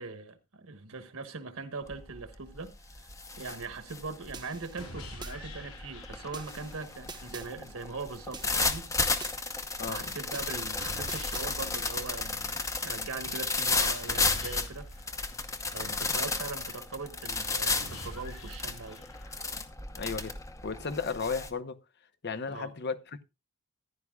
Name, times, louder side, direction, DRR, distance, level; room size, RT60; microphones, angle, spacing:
voice 1, 0.0-8.9 9.3-9.4 9.9-15.1 15.7-19.0 22.5-22.7, right 4 dB, 70° right, 1.3 m, -41 dB
sound 1, 1.9-2.2 2.6-21.5, left 3 dB, 15° left, 0.8 m, -33 dB
sound 2, 4.3-5.4 6.3-7.5 8.3-9.4 10.3-11.5, right 4 dB, 20° right, 0.9 m, -46 dB
sound 3, 4.8-6.8 10.8-12.8 14.1-16.1 17.8-19.8, left 1 dB, 75° left, 4.6 m, -45 dB
voice 2, 9.8-10.1 20.0-20.3 20.6-21.8 22.2-23.2, left 5 dB, 50° left, 0.9 m, -34 dB
14.5 x 11.0 x 2.4 m
head